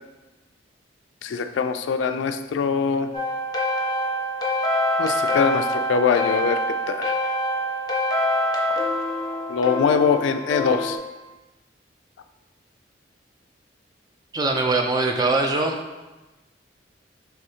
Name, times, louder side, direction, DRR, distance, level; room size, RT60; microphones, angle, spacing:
voice 1, 1.2-3.1 5.0-6.6 6.9-7.2 9.5-11.0, left 6 dB, 90° left, 8 dB, 0.3 m, -22 dB
sound 1, 3.1-11.0, left 1 dB, 25° left, 0.6 m, -25 dB
voice 2, 14.3-15.8, right 3 dB, 20° right, 3 dB, 0.4 m, -22 dB
4.8 x 3.4 x 2.7 m, 1.1 s
head